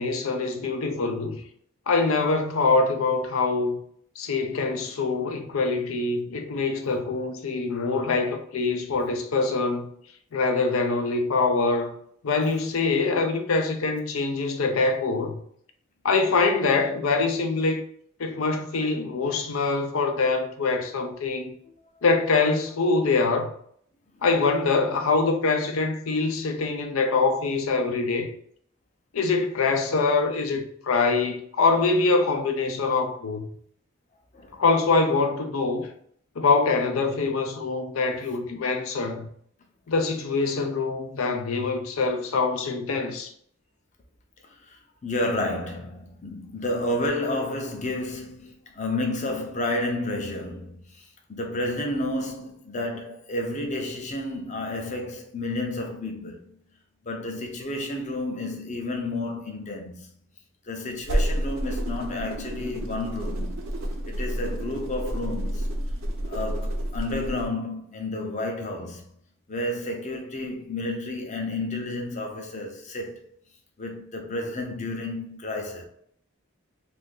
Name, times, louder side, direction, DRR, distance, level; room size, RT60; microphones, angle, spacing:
voice 1, 0.0-1.4 1.9-3.8 4.2-9.9 10.3-11.9 12.2-15.4 16.0-17.8 18.2-21.5 22.0-23.5 24.2-28.3 29.1-33.5 34.5-35.9 36.4-39.3 39.9-43.3, left 3 dB, 85° left, 0.5 m, -24 dB
voice 2, 44.4-56.5 57.0-60.1 60.6-63.5 64.0-65.7 66.3-69.0 69.5-73.2 73.8-75.8, left 1 dB, 35° left, 0.6 m, -31 dB
sound 1, 61.0-67.5, equal, 75° right, 0.6 m, -30 dB
2.6 x 2.5 x 3.7 m
head